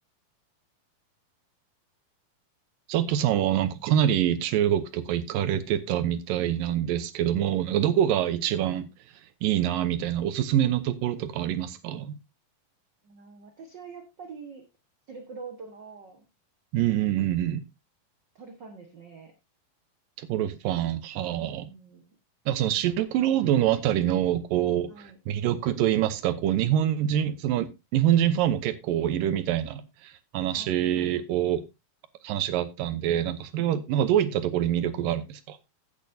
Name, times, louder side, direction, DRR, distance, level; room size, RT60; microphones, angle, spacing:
voice 1, 2.9-8.9 9.4-12.2 16.7-17.6 20.2-21.7 22.5-27.7 27.9-31.6 32.2-35.6, right 11 dB, 75° right, 2.4 m, -25 dB
voice 2, 13.0-14.6 15.1-16.2 17.4-17.5 18.3-19.3 21.4-22.2 24.9-25.2 30.5-30.9, right 5 dB, 55° right, 1.2 m, -45 dB
15.0 x 8.4 x 2.7 m
omnidirectional pair, 4.2 m